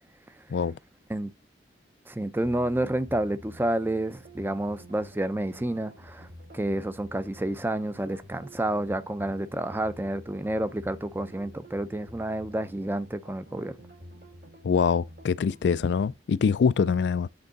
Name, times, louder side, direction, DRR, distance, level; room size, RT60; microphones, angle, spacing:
voice 1, 2.1-6.3 6.5-13.7, right 1 dB, 10° right, 0.4 m, -29 dB
sound 1, 2.4-16.1, equal, 65° right, 5.1 m, -49 dB
voice 2, 14.6-17.3, left 6 dB, 80° left, 0.4 m, -24 dB
7.9 x 3.6 x 4.0 m
head